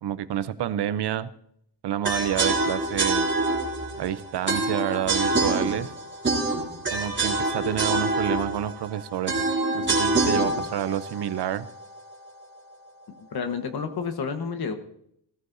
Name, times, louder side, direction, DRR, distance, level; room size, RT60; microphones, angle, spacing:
voice 1, 0.0-1.3 1.8-3.3 4.0-5.9 6.9-9.4 9.7-11.7, right 10 dB, 65° right, 15 dB, 0.8 m, -28 dB
sound 1, 2.0-12.1, right 2 dB, 25° right, 3.3 m, -26 dB
voice 2, 13.2-14.7, left 5 dB, 55° left, 7 dB, 1.3 m, -30 dB
16.0 x 14.5 x 2.7 m, 0.72 s
cardioid pair, 130°, 43 cm